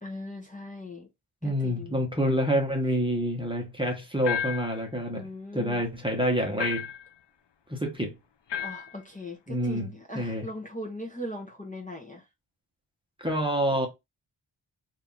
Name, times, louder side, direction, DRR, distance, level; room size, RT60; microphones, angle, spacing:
voice 1, 0.0-1.1 1.4-2.0 5.1-5.8 8.6-12.2, left 1 dB, 15° left, 1.0 m, -39 dB
voice 2, 1.4-5.3 5.5-6.9 7.7-8.1 9.5-10.5 13.2-13.9, equal, 10° right, 1.1 m, -27 dB
sound 1, 4.2-4.8 6.6-7.1 8.5-8.9, left 8 dB, 60° left, 0.6 m, -32 dB
2.8 x 2.8 x 3.8 m
wide cardioid pair, 55°, 50 cm